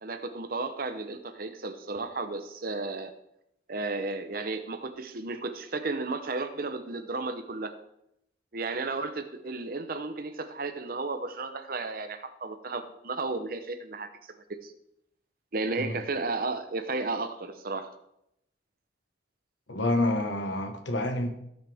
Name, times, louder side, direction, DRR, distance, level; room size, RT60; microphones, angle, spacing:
voice 1, 0.0-3.1 3.7-7.7 8.5-14.1 14.6-14.7 15.5-17.9, right 3 dB, 50° right, 8 dB, 0.8 m, -33 dB
voice 2, 19.7-21.3, left 1 dB, 85° left, 5 dB, 1.5 m, -28 dB
17.5 x 6.5 x 3.5 m, 0.79 s
head